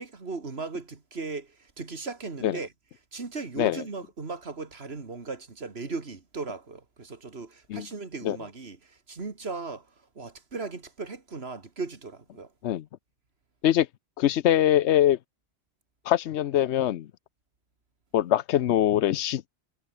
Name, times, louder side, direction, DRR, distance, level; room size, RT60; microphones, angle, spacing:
voice 1, 0.0-2.7 3.1-9.9 10.2-12.5, right 4 dB, 65° right, 2.5 m, -37 dB
voice 2, 14.2-15.2 16.1-17.1 18.1-19.5, left 12 dB, 80° left, 0.9 m, -23 dB
omnidirectional pair, 1.1 m